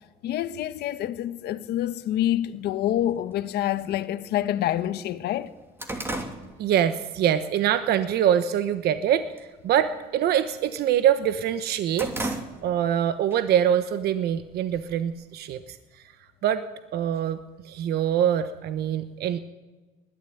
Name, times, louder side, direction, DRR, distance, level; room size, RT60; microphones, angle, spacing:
voice 1, 0.2-5.5, left 12 dB, 75° left, 1.3 m, -27 dB
sound 1, 2.9-3.0 3.9-4.0 4.5-4.6 4.9-7.3 7.7-8.0 8.5-9.0 9.2-9.6 9.9-11.1 11.5-13.0 13.3-13.4 14.3-15.2, right 1 dB, 15° right, 2.9 m, -35 dB
voice 2, 6.6-16.0 16.4-16.6 16.9-17.4 17.6-19.4, right 10 dB, 70° right, 1.1 m, -24 dB
20.5 x 13.5 x 9.4 m
cardioid pair, 110°, 17 cm